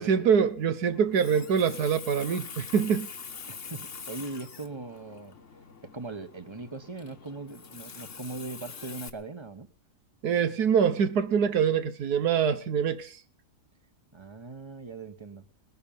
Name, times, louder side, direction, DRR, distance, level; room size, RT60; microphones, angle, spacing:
voice 1, 0.0-3.1 10.2-13.1, right 7 dB, 80° right, 1.5 m, -24 dB
Water tap faucet, 0.9-9.1, left 6 dB, 50° left, 1.6 m, -44 dB
voice 2, 3.5-5.4 5.8-9.7 14.1-15.5, right 3 dB, 20° right, 1.1 m, -40 dB
20.5 x 9.8 x 7.2 m
omnidirectional pair, 1.7 m